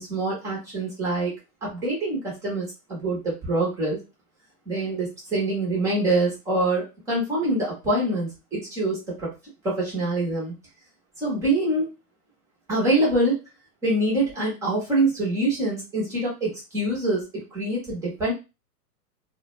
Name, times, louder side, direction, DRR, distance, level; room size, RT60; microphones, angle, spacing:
voice 1, 0.0-1.3 1.6-4.0 4.7-9.3 9.6-10.5 11.2-11.9 12.7-13.4 13.8-18.3, right 2 dB, 5° right, -5 dB, 0.4 m, -25 dB
2.2 x 2.0 x 2.9 m, 0.27 s
hypercardioid pair, 135°, 47 cm